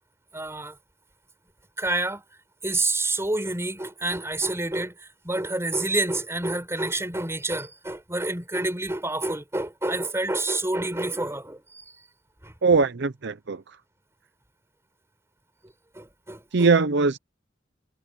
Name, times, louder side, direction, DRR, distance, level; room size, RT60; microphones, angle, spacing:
voice 1, 0.3-0.8 1.8-2.2 2.6-11.8 12.4-12.5 15.9-16.7, right 2 dB, 15° right, 4.7 m, -28 dB
voice 2, 12.6-13.8 16.5-17.2, right 4 dB, 65° right, 0.7 m, -21 dB
head